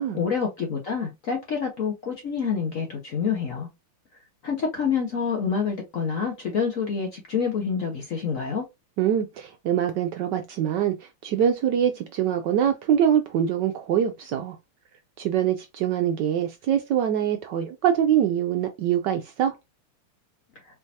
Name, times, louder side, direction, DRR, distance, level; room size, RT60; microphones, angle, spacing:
voice 1, 0.1-3.7 4.4-8.6, left 6 dB, 60° left, 0.9 m, -27 dB
voice 2, 9.0-14.6 15.2-19.5, right 9 dB, 75° right, 1.0 m, -24 dB
4.5 x 3.4 x 2.7 m
omnidirectional pair, 2.3 m